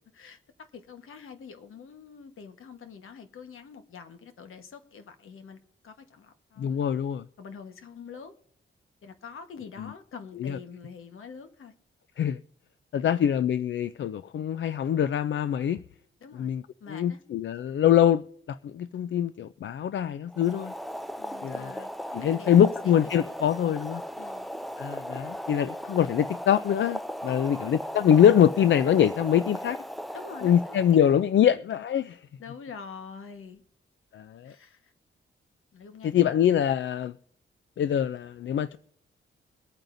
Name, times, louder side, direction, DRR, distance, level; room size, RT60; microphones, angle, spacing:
voice 1, 0.1-6.8 7.4-8.3 9.0-11.7 12.9-13.2 16.2-16.5 16.8-17.2 21.2-21.9 22.2-22.9 23.5-23.7 24.2-24.5 27.3-27.8 30.1-31.0 31.4-31.5 32.4-33.6 34.4-34.9 35.7-36.3, left 6 dB, 80° left, 1.3 m, -45 dB
voice 2, 6.6-7.2 9.8-9.9 10.4-10.6 12.2-12.4 12.9-15.8 16.3-16.6 16.9-18.2 18.5-20.7 21.4-21.9 22.1-24.0 24.8-29.8 30.4-32.3 34.1-34.5 36.0-37.1 37.8-38.8, left 9 dB, 65° left, 0.4 m, -24 dB
Boiling, 20.3-31.3, equal, ahead, 0.4 m, -37 dB
23.0 x 8.9 x 2.6 m
wide cardioid pair, 115°, 21 cm